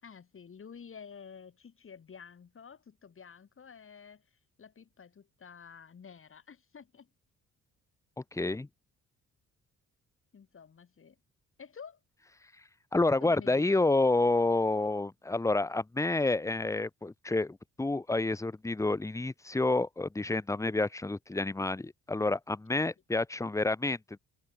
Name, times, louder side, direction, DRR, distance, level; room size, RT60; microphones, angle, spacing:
voice 1, 0.0-7.1 10.3-11.2 11.6-12.0 13.2-13.9, left 6 dB, 45° left, 6.7 m, -50 dB
voice 2, 8.3-8.7 12.9-24.2, left 2 dB, 10° left, 0.9 m, -29 dB
open air
cardioid pair, 90°, 30 cm